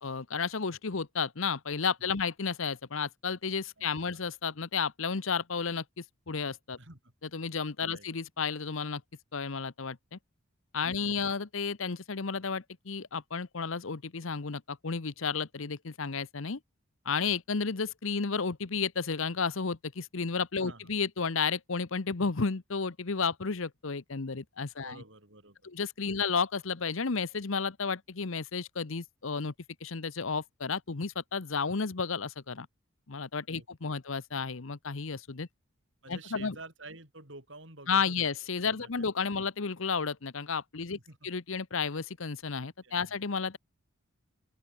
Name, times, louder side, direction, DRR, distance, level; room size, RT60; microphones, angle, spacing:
voice 1, 0.0-6.8 7.3-9.0 9.3-10.2 10.7-16.6 17.0-25.0 25.6-29.5 29.8-32.7 33.1-35.5 36.1-36.5 37.9-41.0 41.2-43.6, left 5 dB, 70° left, 0.9 m, -32 dB
voice 2, 3.8-4.2 6.8-7.1 7.9-8.1 10.8-11.3 20.6-20.9 24.8-25.6 26.1-26.2 33.5-34.0 36.0-38.3 38.6-39.1 39.4-39.5 40.8-41.3 42.8-43.2, right 2 dB, 60° right, 6.1 m, -51 dB
open air
head